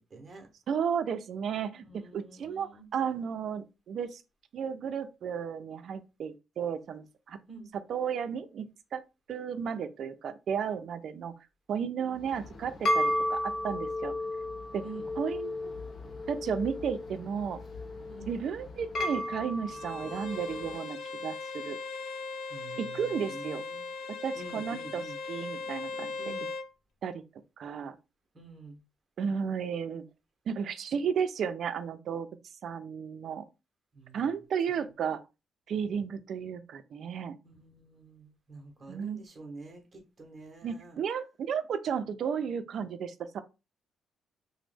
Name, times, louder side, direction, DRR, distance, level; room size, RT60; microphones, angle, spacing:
voice 1, 0.0-0.5 1.9-2.9 7.5-7.7 12.0-12.2 14.8-15.1 18.1-18.3 22.5-23.8 24.4-25.2 26.2-26.5 28.3-28.8 33.9-34.2 34.7-34.8 37.4-41.0, right 3 dB, 25° right, 0.8 m, -48 dB
voice 2, 0.7-4.2 4.5-7.4 7.9-8.7 8.9-9.0 9.3-11.3 11.7-14.1 14.7-14.8 15.2-15.7 16.3-17.6 18.3-21.8 22.8-23.6 24.2-26.2 27.0-27.2 27.6-28.0 29.2-30.0 30.5-32.3 32.6-33.5 34.1-35.2 35.7-37.4 38.9-39.2 40.6-43.4, right 7 dB, 55° right, 0.4 m, -33 dB
sound 1, 12.2-20.7, left 1 dB, 40° left, 0.6 m, -34 dB
Bowed string instrument, 19.7-26.7, left 4 dB, 90° left, 0.4 m, -39 dB
3.0 x 2.0 x 3.3 m
cardioid pair, 155°, 0 cm